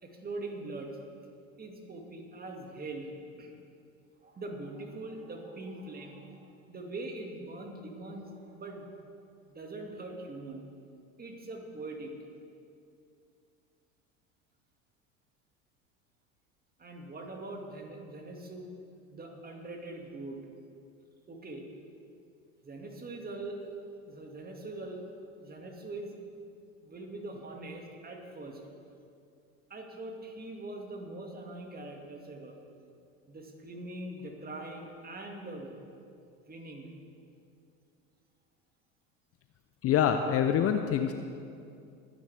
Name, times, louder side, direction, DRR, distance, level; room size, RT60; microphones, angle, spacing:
voice 1, 0.0-0.9 1.6-3.1 3.4-3.5 4.2-8.9 9.4-10.6 11.2-12.1 16.8-18.7 19.1-20.4 21.3-21.6 22.6-23.6 24.1-25.0 25.4-26.2 26.8-28.6 29.7-32.5 33.3-35.7 36.5-36.9, right 2 dB, 20° right, 2 dB, 2.2 m, -42 dB
voice 2, 39.8-41.1, left 9 dB, 35° left, 7 dB, 0.7 m, -25 dB
22.0 x 9.9 x 3.5 m, 2.5 s
figure-of-eight pair, 75°, 41 cm